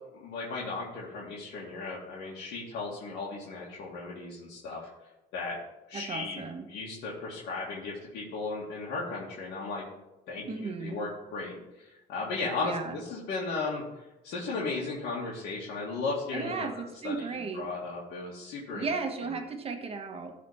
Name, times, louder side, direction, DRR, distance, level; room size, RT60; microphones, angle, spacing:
voice 1, 0.1-4.9 5.3-5.6 5.9-9.8 10.3-18.9, left 3 dB, 80° left, -5 dB, 2.0 m, -36 dB
voice 2, 5.9-6.7 10.4-11.0 12.6-12.9 16.3-17.7 18.7-20.3, right 4 dB, 35° right, 5 dB, 1.3 m, -35 dB
12.5 x 4.2 x 5.6 m, 0.97 s
cardioid pair, 110°, 17 cm